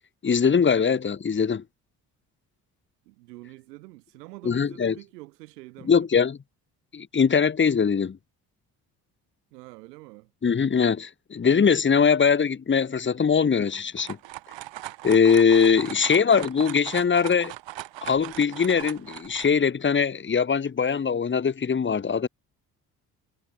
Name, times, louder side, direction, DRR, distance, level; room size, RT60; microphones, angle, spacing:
voice 1, 0.2-1.6 4.4-4.9 5.9-6.4 6.9-8.2 10.4-14.2 15.0-17.5 18.0-22.3, left 6 dB, 25° left, 1.0 m, -21 dB
voice 2, 3.0-6.1 9.5-10.3 15.9-16.3, right 21 dB, 85° right, 2.6 m, -46 dB
sound 1, 13.7-19.5, right 16 dB, 65° right, 2.4 m, -39 dB
hypercardioid pair, 45°, 47 cm